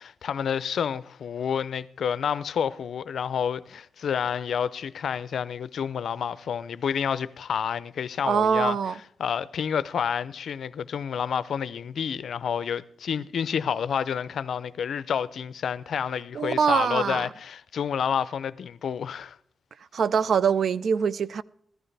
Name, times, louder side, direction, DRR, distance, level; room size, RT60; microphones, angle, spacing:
voice 1, 0.0-8.8 9.2-19.4, left 7 dB, 80° left, 0.4 m, -29 dB
voice 2, 8.2-8.9 16.3-17.3 19.9-21.4, right 6 dB, 70° right, 0.3 m, -23 dB
15.0 x 12.5 x 3.3 m
cardioid pair, 90°, 0 cm